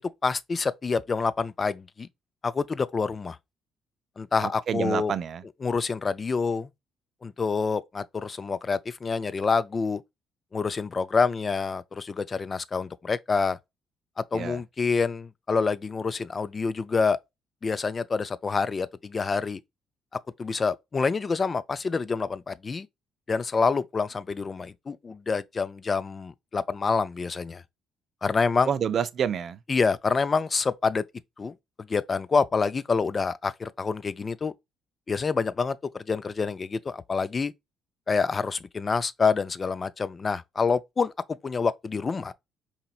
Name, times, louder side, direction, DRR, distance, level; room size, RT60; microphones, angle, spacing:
voice 1, 0.2-2.1 2.4-3.4 4.2-5.1 5.6-6.7 7.2-10.0 10.5-13.6 14.2-17.2 17.6-19.6 20.4-22.9 23.3-27.6 28.2-28.7 29.7-31.0 31.4-34.5 35.1-37.5 38.1-41.1 41.4-42.3, left 4 dB, 35° left, 0.4 m, -27 dB
voice 2, 4.4-5.4 14.3-14.6 28.6-29.6, right 8 dB, 60° right, 0.4 m, -28 dB
4.2 x 2.9 x 2.4 m
supercardioid pair, 65°, 0 cm